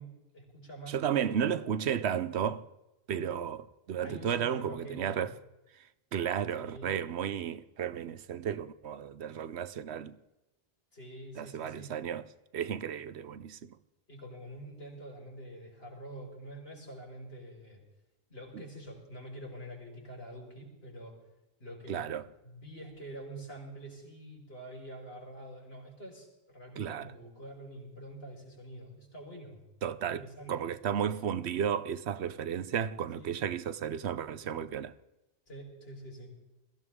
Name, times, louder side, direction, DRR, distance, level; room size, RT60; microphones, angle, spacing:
voice 1, 0.0-1.6 4.0-5.3 6.6-7.0 10.9-11.9 14.1-17.8 18.3-21.2 21.6-22.1 22.4-29.6 30.1-30.7 33.1-33.3 35.5-36.3, right 1 dB, 70° left, 5.5 m, -46 dB
voice 2, 0.9-2.7 3.1-5.3 6.1-10.2 11.4-12.3 12.5-13.8 21.9-22.2 26.8-27.1 29.8-30.2 30.5-34.9, right 8 dB, 85° right, 1.0 m, -33 dB
21.5 x 16.0 x 3.7 m
omnidirectional pair, 1.1 m